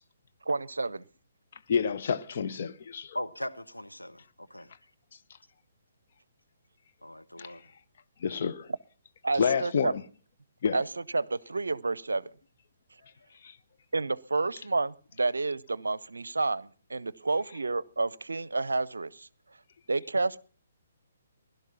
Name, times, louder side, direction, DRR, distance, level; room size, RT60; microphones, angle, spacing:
voice 1, 0.5-1.0 9.2-9.9 10.7-12.3 13.9-19.3 19.9-20.4, right 3 dB, 70° right, 0.6 m, -30 dB
voice 2, 1.7-3.2 7.4-7.5 8.2-8.7 9.4-10.0 10.6-10.8 13.4-13.5, left 6 dB, 45° left, 1.0 m, -29 dB
voice 3, 3.1-4.7 7.0-7.6, left 1 dB, 85° left, 1.1 m, -39 dB
16.5 x 11.5 x 5.7 m
figure-of-eight pair, 130°, 0 cm